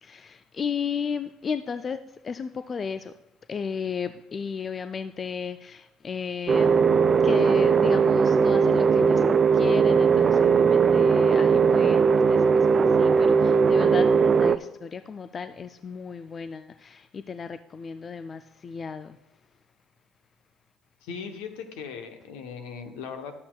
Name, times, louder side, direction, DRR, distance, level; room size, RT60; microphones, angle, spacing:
voice 1, 0.0-3.1 3.5-9.2 9.5-19.2, left 6 dB, 40° left, 11 dB, 0.3 m, -34 dB
sound 1, 6.5-14.6, right 6 dB, 40° right, 0.3 m, -19 dB
voice 2, 21.0-23.3, left 6 dB, 75° left, 6 dB, 0.9 m, -38 dB
11.5 x 8.5 x 2.3 m, 0.94 s
hypercardioid pair, 65°, 0 cm